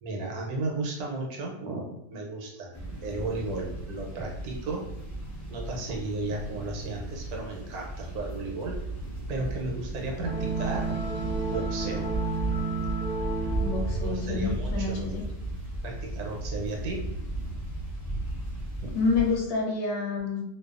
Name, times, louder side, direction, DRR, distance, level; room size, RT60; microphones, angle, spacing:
voice 1, 0.0-2.7 3.0-4.9 5.5-8.8 9.3-11.1 11.5-12.1 13.8-15.1 15.8-17.1 18.8-18.9, right 2 dB, 75° right, 0 dB, 1.1 m, -34 dB
sound 1, 2.7-19.4, right 1 dB, 20° left, 0.5 m, -35 dB
sound 2, 10.2-14.8, right 4 dB, 45° right, 0.6 m, -32 dB
voice 2, 13.6-15.2 18.9-20.4, left 4 dB, 60° left, -1 dB, 0.9 m, -28 dB
2.5 x 2.3 x 2.3 m, 0.78 s
omnidirectional pair, 1.6 m